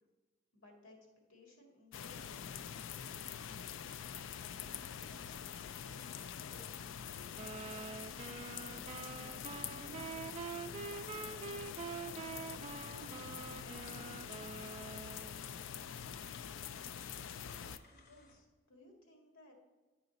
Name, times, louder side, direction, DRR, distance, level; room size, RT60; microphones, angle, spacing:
voice 1, 0.5-2.4 17.9-19.5, left 2 dB, 90° left, 1 dB, 1.8 m, -61 dB
sound 1, 1.9-17.8, left 8 dB, 65° left, 0.4 m, -45 dB
voice 2, 4.4-7.0 10.8-11.4 12.0-15.7, left 1 dB, 30° left, 2 dB, 0.7 m, -65 dB
sound 2, 7.4-15.4, right 5 dB, 30° right, 0.3 m, -46 dB
sound 3, 17.4-18.5, left 3 dB, 50° left, 0.9 m, -68 dB
9.7 x 4.9 x 4.0 m, 1.3 s
head